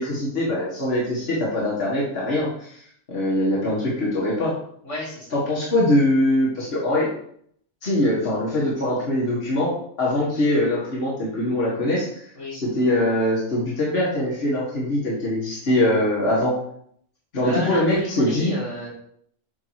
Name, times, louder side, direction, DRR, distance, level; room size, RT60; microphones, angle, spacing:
voice 1, 0.0-2.8 3.1-4.6 5.3-7.1 7.8-12.1 12.5-16.6 17.3-18.6, left 1 dB, 60° left, -6 dB, 1.8 m, -22 dB
voice 2, 4.8-5.3 12.3-12.6 17.4-18.9, left 1 dB, 80° left, -4 dB, 2.7 m, -31 dB
8.2 x 2.8 x 4.7 m, 0.65 s
omnidirectional pair, 1.2 m